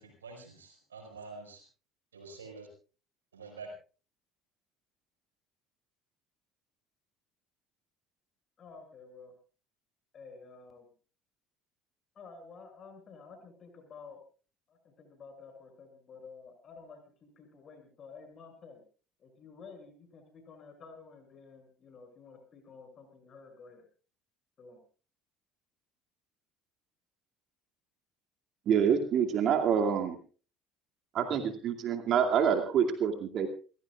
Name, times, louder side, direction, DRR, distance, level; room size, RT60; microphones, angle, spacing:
voice 1, 0.0-1.6 2.1-2.7 3.3-3.7, right 4 dB, 85° right, 2 dB, 5.2 m, -47 dB
voice 2, 8.6-9.3 10.1-10.9 12.1-14.2 14.7-18.8 19.2-23.8 24.6-24.8, left 4 dB, 45° left, 5 dB, 6.7 m, -51 dB
voice 3, 28.7-30.2 31.1-33.5, right 7 dB, 50° right, 4 dB, 2.4 m, -27 dB
28.5 x 16.0 x 2.4 m, 0.37 s
hypercardioid pair, 60°, 0 cm